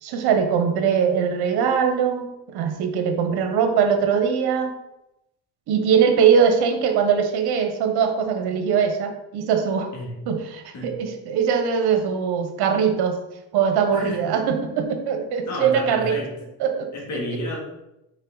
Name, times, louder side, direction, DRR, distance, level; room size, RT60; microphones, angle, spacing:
voice 1, 0.0-4.7 5.7-9.9 10.3-13.2 13.5-16.2 16.6-16.9 17.3-17.4, right 7 dB, 75° right, 6 dB, 1.2 m, -21 dB
voice 2, 15.4-16.3 16.9-17.6, left 1 dB, 45° left, -2 dB, 2.6 m, -31 dB
6.4 x 5.1 x 4.0 m, 0.90 s
cardioid pair, 115°, 39 cm